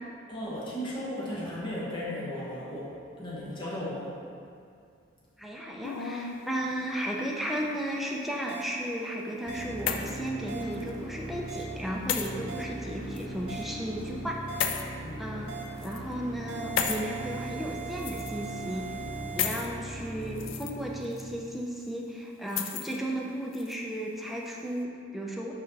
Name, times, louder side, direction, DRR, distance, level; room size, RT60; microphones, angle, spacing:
voice 1, 0.3-4.1 12.4-12.5 15.0-15.4, left 1 dB, 25° left, -6 dB, 1.1 m, -36 dB
voice 2, 5.4-14.8 15.2-15.5 15.8-18.9 19.3-25.5, right 1 dB, ahead, -2 dB, 0.5 m, -34 dB
sound 1, 5.8-6.4 7.4-8.1 9.3-10.3 10.7-10.9 12.1-12.3 13.2-13.3 14.6-14.8 15.7-16.0 16.8-17.0 18.0-18.5 19.4-19.7 20.2-20.7 21.1-21.2 22.5-23.0 23.5-23.8, left 7 dB, 70° left, 0.4 m, -32 dB
sound 2, 8.5-8.6 9.5-9.6 10.5-10.6 11.5-11.6 12.5-12.6 13.5-13.6 14.5-14.6 15.5-15.6 16.5-19.5, right 10 dB, 70° right, 0.7 m, -40 dB
sound 3, 9.5-21.4, equal, 35° right, 1.0 m, -40 dB
5.2 x 4.8 x 4.1 m, 2.3 s
head